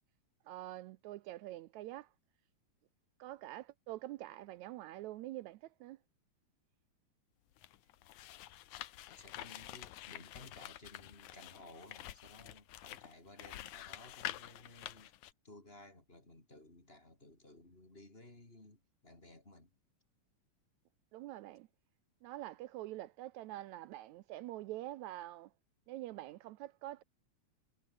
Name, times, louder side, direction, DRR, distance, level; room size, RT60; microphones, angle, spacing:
voice 1, 0.5-2.1 3.2-6.0 21.1-21.7 22.2-25.5 25.9-27.0, right 15 dB, 80° right, 2.0 m, -46 dB
sound 1, 7.5-15.3, left 14 dB, 80° left, 2.4 m, -48 dB
voice 2, 9.1-15.1 15.4-19.7, left 1 dB, 20° left, 3.8 m, -57 dB
omnidirectional pair, 3.4 m